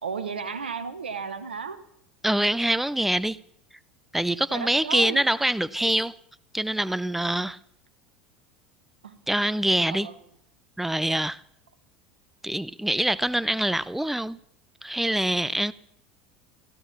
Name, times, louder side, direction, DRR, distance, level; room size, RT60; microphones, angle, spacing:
voice 1, 0.0-1.8 4.5-5.2 5.8-5.9 9.0-9.2 9.9-10.1, right 5 dB, 85° right, 1.1 m, -33 dB
voice 2, 2.2-3.4 4.1-6.1 6.5-7.6 9.3-10.1 10.8-11.4 12.4-14.4 14.8-15.7, right 1 dB, 5° right, 0.6 m, -25 dB
16.0 x 13.0 x 5.9 m
hypercardioid pair, 75°, 5 cm